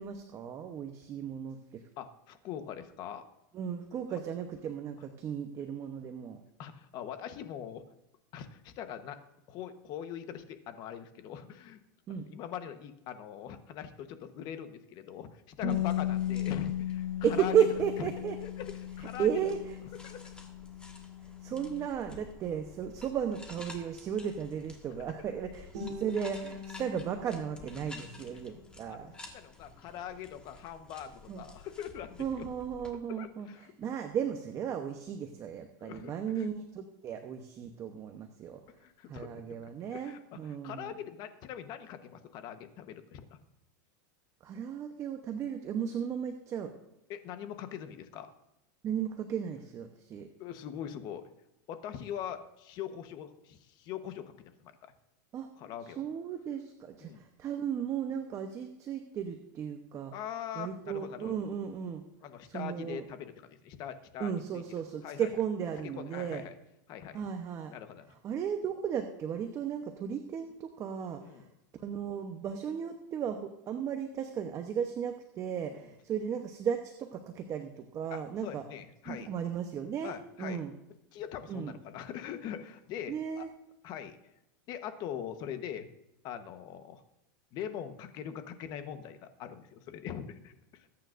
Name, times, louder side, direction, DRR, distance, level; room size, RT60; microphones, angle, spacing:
voice 1, 0.0-1.8 3.5-6.4 12.1-12.3 15.6-15.8 17.2-18.4 19.2-19.8 21.4-29.1 31.3-31.4 32.2-33.5 33.8-38.6 39.1-40.9 44.4-46.7 48.8-50.3 55.3-55.5 56.0-60.1 60.5-62.0 62.5-63.0 64.2-66.4 67.1-67.7 68.2-71.5 71.8-78.6 79.1-80.1 80.4-80.7 81.5-81.7 83.1-83.5, right 8 dB, 30° right, 6 dB, 0.9 m, -35 dB
voice 2, 2.0-3.2 6.6-7.8 8.3-9.2 9.5-11.8 12.3-17.5 18.0-18.1 18.4-19.3 20.0-20.3 25.0-25.1 28.3-28.4 28.9-29.1 29.3-32.5 33.1-33.7 35.8-36.5 38.8-39.6 39.9-43.4 47.1-48.3 50.4-51.3 51.7-54.3 54.6-54.9 55.6-56.0 57.0-57.2 60.1-61.4 62.2-65.3 65.9-66.5 66.9-67.2 67.7-68.0 71.2-71.5 75.7-75.8 78.1-79.3 80.0-80.6 81.1-83.5 83.8-84.2 84.7-85.9 86.2-87.0 87.5-90.9, left 9 dB, 40° left, 9 dB, 1.1 m, -42 dB
Bass guitar, 15.6-21.9, left 13 dB, 60° left, 0.8 m, -36 dB
sound 1, 15.7-32.9, left 3 dB, 10° left, 1.7 m, -52 dB
Guitar, 25.7-28.8, left 3 dB, 60° right, 2.9 m, -44 dB
20.5 x 9.1 x 2.6 m, 0.88 s
supercardioid pair, 140°, 10 cm